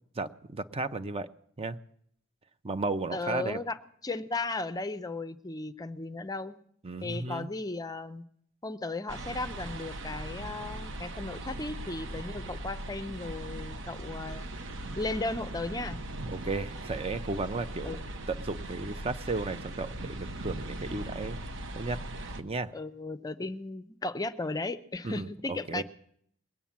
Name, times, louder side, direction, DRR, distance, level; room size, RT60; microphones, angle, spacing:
voice 1, 0.2-1.3 1.6-1.8 2.6-3.6 6.8-7.5 16.3-18.0 18.3-21.4 21.7-22.0 22.4-22.7 25.0-25.8, right 3 dB, 30° right, 11 dB, 0.6 m, -34 dB
voice 2, 3.1-3.8 4.0-6.6 7.0-8.2 8.6-14.5 15.0-16.0 17.8-18.0 22.7-25.8, left 2 dB, 20° left, 12 dB, 0.5 m, -35 dB
sound 1, 9.1-22.4, right 1 dB, 65° right, 1.0 m, -39 dB
21.0 x 8.9 x 7.2 m, 0.66 s
head